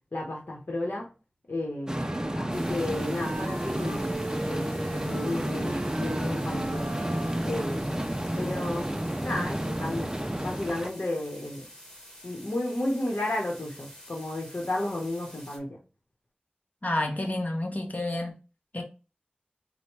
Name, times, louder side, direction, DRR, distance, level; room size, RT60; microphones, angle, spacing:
voice 1, 0.1-1.1 1.5-4.1 4.5-6.9 7.4-8.0 8.4-8.9 9.2-10.1 10.4-11.7 12.2-15.8, left 1 dB, 85° left, 0.9 m, -33 dB
sound 1, 1.9-10.9, right 1 dB, 20° right, 0.4 m, -31 dB
sound 2, 1.9-7.6, right 2 dB, 70° right, 0.6 m, -39 dB
sound 3, 2.5-15.6, equal, 15° left, 1.4 m, -49 dB
voice 2, 16.8-18.3 18.7-18.8, left 1 dB, 55° left, 1.0 m, -29 dB
4.1 x 2.1 x 4.5 m
wide cardioid pair, 45°, 3 cm